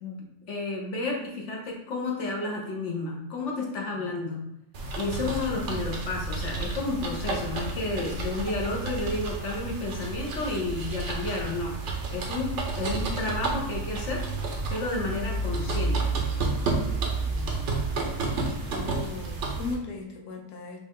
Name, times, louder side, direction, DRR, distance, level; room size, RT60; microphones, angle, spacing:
voice 1, 0.5-4.5 4.9-11.8 12.1-14.2 14.7-16.1, left 2 dB, 55° left, -1 dB, 1.1 m, -31 dB
voice 2, 3.9-4.3 17.2-17.8 18.1-20.8, left 4 dB, 90° left, 1 dB, 1.3 m, -39 dB
sound 1, 4.7-19.7, right 3 dB, 55° right, 1.0 m, -31 dB
5.2 x 2.5 x 3.6 m, 0.87 s
omnidirectional pair, 1.6 m